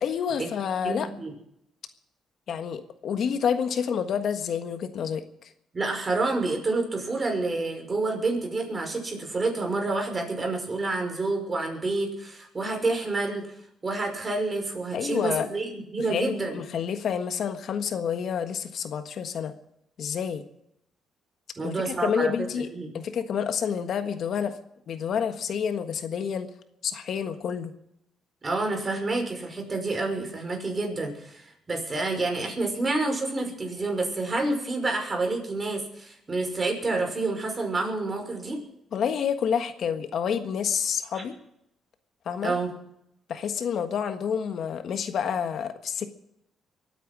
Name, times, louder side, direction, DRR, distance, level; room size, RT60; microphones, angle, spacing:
voice 1, 0.0-1.1 2.5-5.5 14.9-15.5 16.1-19.5 20.0-20.4 21.6-24.5 24.9-26.5 26.8-27.7 38.9-41.4 42.2-42.5 43.3-46.1, left 7 dB, 65° left, 8 dB, 1.4 m, -29 dB
voice 2, 0.8-1.3 5.7-13.4 13.8-16.6 21.6-22.9 28.4-38.6 41.1-41.2 42.4-42.7, right 3 dB, 30° right, 3 dB, 5.6 m, -28 dB
23.5 x 9.3 x 6.2 m, 0.77 s
cardioid pair, 90°, 0 cm